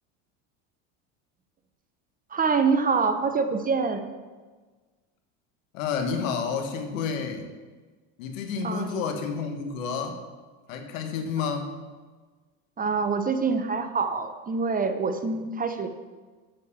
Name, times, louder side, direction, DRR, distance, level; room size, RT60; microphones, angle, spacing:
voice 1, 2.3-4.1 8.6-8.9 12.8-15.9, right 5 dB, 20° right, 7 dB, 0.9 m, -25 dB
voice 2, 5.7-7.5 8.2-10.2 10.7-11.7, left 6 dB, 80° left, 5 dB, 1.5 m, -30 dB
7.7 x 6.6 x 6.9 m, 1.4 s
supercardioid pair, 100°, 39 cm